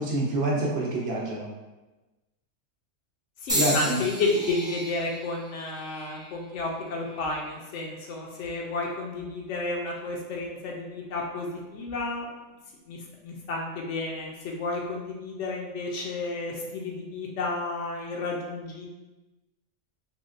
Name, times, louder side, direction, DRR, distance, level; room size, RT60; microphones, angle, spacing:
voice 1, 0.0-1.5 3.5-4.0, right 1 dB, 60° right, -3 dB, 0.9 m, -27 dB
voice 2, 3.4-12.3 12.9-18.9, left 2 dB, 75° left, -1 dB, 0.9 m, -31 dB
sound 1, 3.5-7.6 8.3-8.8 9.7-9.9, equal, 5° right, 0.5 m, -34 dB
3.6 x 2.1 x 2.4 m, 1.1 s
omnidirectional pair, 1.3 m